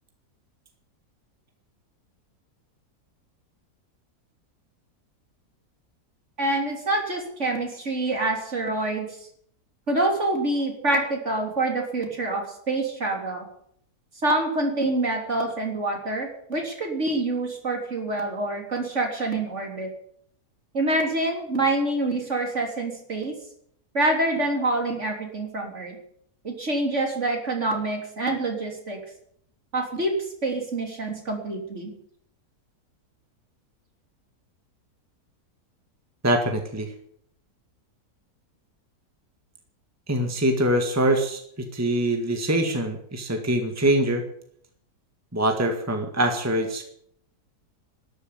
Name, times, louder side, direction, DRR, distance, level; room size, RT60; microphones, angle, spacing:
voice 1, 6.4-9.1 9.9-13.5 14.2-19.9 20.7-23.3 23.9-26.0 26.4-29.0 29.7-30.2 30.4-31.9, right 2 dB, 45° right, 2 dB, 3.7 m, -26 dB
voice 2, 36.2-36.9 40.1-41.4 41.7-44.2 45.3-46.9, right 1 dB, 10° right, 4 dB, 1.8 m, -24 dB
13.0 x 11.5 x 9.5 m, 0.67 s
omnidirectional pair, 1.7 m